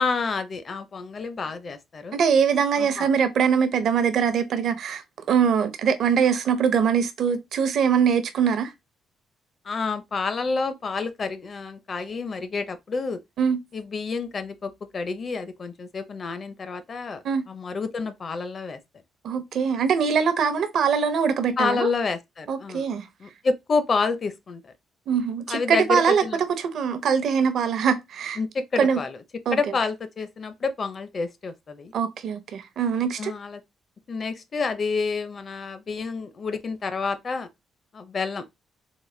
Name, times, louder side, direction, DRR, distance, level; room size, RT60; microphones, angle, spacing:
voice 1, 0.0-2.2 2.8-3.1 9.6-13.2 13.7-18.8 21.6-22.9 23.2-24.7 25.5-26.4 28.4-29.2 29.5-31.9 33.2-33.6 34.1-37.5 37.9-38.5, left 4 dB, 45° left, 0.6 m, -29 dB
voice 2, 2.1-5.0 5.3-8.7 13.4-13.6 17.2-17.4 19.2-21.9 22.5-23.1 25.1-28.4 28.8-29.0 29.5-29.6 31.9-33.3, right 7 dB, 65° right, 0.7 m, -22 dB
3.9 x 2.2 x 3.2 m
cardioid pair, 90°, 0 cm